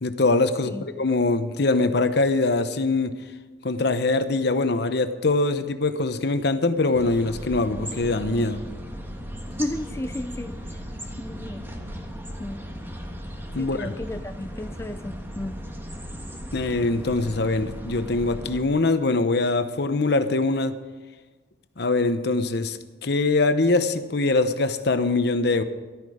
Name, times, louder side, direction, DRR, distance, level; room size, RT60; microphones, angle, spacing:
voice 1, 0.0-3.1 3.6-8.6 13.5-13.9 16.5-20.7 21.8-25.6, left 3 dB, 65° left, 10 dB, 0.9 m, -23 dB
sound 1, 6.9-18.6, equal, 15° right, 1.5 m, -37 dB
voice 2, 9.6-10.6 11.2-11.6 12.4-12.6 13.6-15.5, left 1 dB, 15° left, 8 dB, 0.4 m, -33 dB
13.5 x 12.5 x 5.0 m, 1.3 s
head